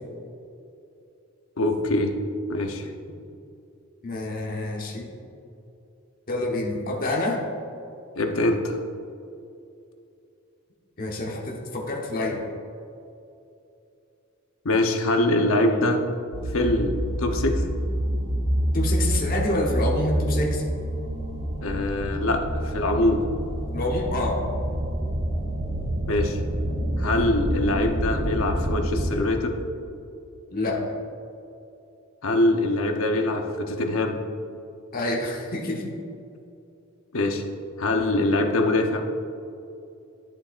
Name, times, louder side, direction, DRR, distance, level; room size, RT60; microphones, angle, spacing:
voice 1, 1.6-2.1 2.5-2.9 8.2-8.8 14.6-16.0 16.5-17.6 21.6-23.2 26.1-26.4 27.0-29.6 32.2-34.2 37.1-37.4 37.8-39.0, left 1 dB, 80° left, 4 dB, 0.8 m, -23 dB
voice 2, 4.0-5.1 6.3-7.4 11.0-12.4 18.7-20.6 23.7-24.4 30.5-30.9 34.9-35.9, left 1 dB, 45° left, -1 dB, 1.1 m, -27 dB
sound 1, 16.3-29.2, right 1 dB, 65° right, 1.2 m, -27 dB
11.5 x 7.3 x 2.5 m, 2.6 s
head